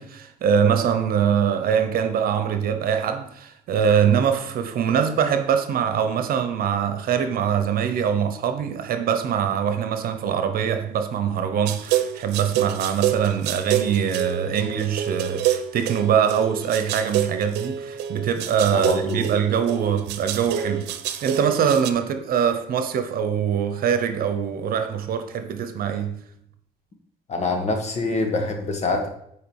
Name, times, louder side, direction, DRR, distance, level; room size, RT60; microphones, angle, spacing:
voice 1, 0.0-20.9 21.2-26.2, right 8 dB, 60° right, 1.0 m, -23 dB
sound 1, 11.7-21.9, right 10 dB, 90° right, 0.7 m, -27 dB
voice 2, 18.7-19.3 27.3-29.1, left 3 dB, 40° left, 1.7 m, -25 dB
8.6 x 4.8 x 4.9 m
cardioid pair, 110°, 17 cm